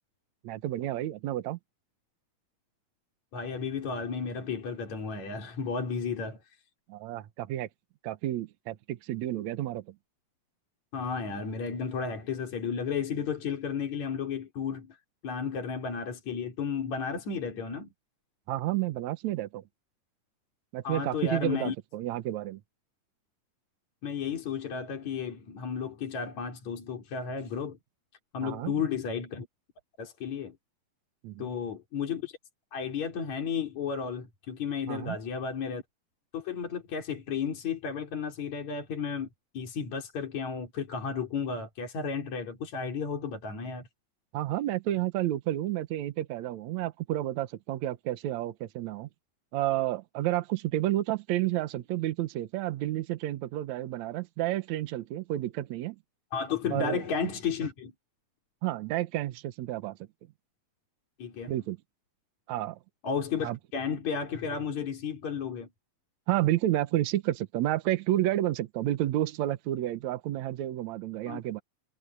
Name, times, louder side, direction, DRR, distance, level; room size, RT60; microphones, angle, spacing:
voice 1, 0.4-1.6 6.9-7.7 8.0-9.9 18.5-19.6 20.7-22.6 28.4-28.7 31.2-31.5 34.9-35.2 44.3-49.1 49.5-56.0 56.7-57.0 58.6-60.0 61.5-61.8 62.5-62.8 63.4-63.6 66.3-71.6, right 14 dB, 75° right, 2.3 m, -30 dB
voice 2, 3.3-6.4 10.9-15.0 15.2-17.9 20.8-21.7 24.0-27.8 28.3-29.5 30.0-30.6 31.4-32.4 32.7-35.8 36.3-39.3 39.5-43.9 56.3-57.9 61.2-61.5 63.0-65.7 71.3-71.4, left 6 dB, 70° left, 4.8 m, -33 dB
omnidirectional pair, 3.4 m